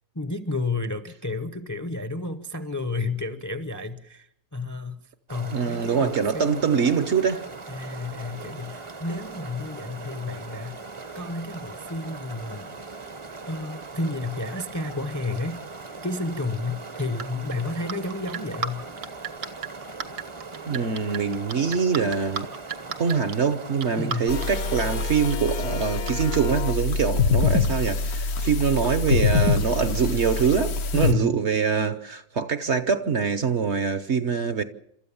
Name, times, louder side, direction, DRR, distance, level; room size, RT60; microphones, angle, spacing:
voice 1, 0.1-5.0 5.3-6.6 7.7-10.8 11.1-12.7 13.5-15.6 16.0-18.8 24.0-24.3 30.9-31.4, left 3 dB, 15° left, 0.7 m, -31 dB
sound 1, 5.3-25.0, right 3 dB, 25° right, 0.8 m, -40 dB
voice 2, 5.5-7.4 20.7-22.5 23.0-34.6, right 6 dB, 50° right, 1.1 m, -24 dB
sound 2, 16.6-18.7 19.0-23.4 23.8-24.5 24.8-24.9 25.3-25.4 25.8-26.4, right 7 dB, 75° right, 1.6 m, -33 dB
sound 3, 24.3-31.1, left 4 dB, 75° left, 1.5 m, -25 dB
28.0 x 13.5 x 7.1 m
omnidirectional pair, 1.6 m